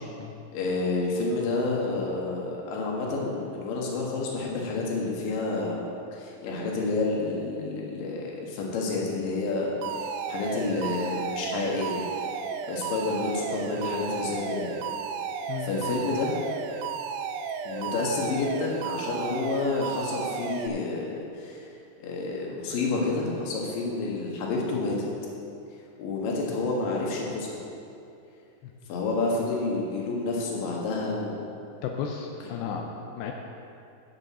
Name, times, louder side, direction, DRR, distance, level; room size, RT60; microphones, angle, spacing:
voice 1, 0.5-12.0 12.7-14.7 15.6-16.3 17.6-21.6 22.0-25.0 26.0-27.6 28.9-31.5 32.7-32.9, left 3 dB, 65° left, -2 dB, 3.0 m, -29 dB
Alarm, 9.8-20.7, right 6 dB, 85° right, 2.1 m, -33 dB
voice 2, 31.8-32.8 33.2-33.3, left 7 dB, 85° left, 2 dB, 2.7 m, -33 dB
13.5 x 7.8 x 4.2 m, 2.7 s
omnidirectional pair, 4.7 m